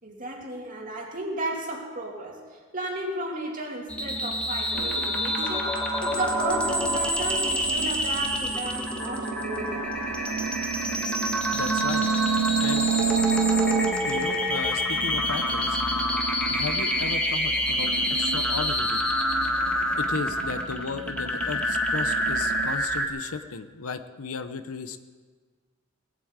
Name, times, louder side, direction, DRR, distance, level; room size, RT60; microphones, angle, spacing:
voice 1, 0.0-9.9, right 2 dB, 35° right, 0 dB, 2.7 m, -33 dB
sound 1, 3.9-23.1, equal, 5° left, 1.5 m, -27 dB
sound 2, 4.7-14.4 14.9-22.7, right 6 dB, 55° right, 0.3 m, -31 dB
voice 2, 11.5-12.1 12.6-12.9 14.0-15.8 16.5-19.0 20.0-25.0, left 4 dB, 75° left, 9 dB, 0.8 m, -35 dB
18.5 x 8.5 x 8.1 m, 1.5 s
head